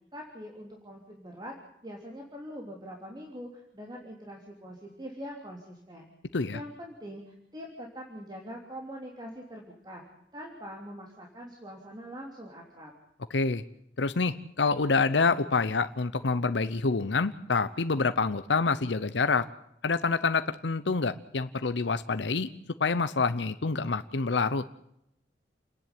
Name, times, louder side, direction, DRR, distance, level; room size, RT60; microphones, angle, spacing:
voice 1, 0.1-1.5 1.8-6.1 6.5-10.0 10.3-12.9, equal, 25° right, 0 dB, 3.2 m, -43 dB
voice 2, 13.3-13.6 14.0-19.5 19.8-22.5 22.8-24.7, left 4 dB, 80° left, 12 dB, 0.8 m, -27 dB
29.0 x 10.5 x 9.8 m, 0.78 s
head